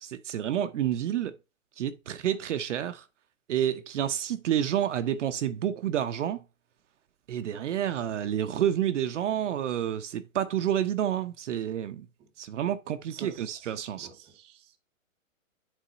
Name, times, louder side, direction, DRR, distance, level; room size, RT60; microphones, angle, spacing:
voice 1, 0.0-1.3 1.8-3.0 3.5-6.4 7.3-12.1 12.4-14.1, right 10 dB, 60° right, 0.7 m, -29 dB
voice 2, 13.1-13.7 13.9-14.8, right 6 dB, 15° right, 0.8 m, -46 dB
8.1 x 3.6 x 3.9 m
hypercardioid pair, 140°, 41 cm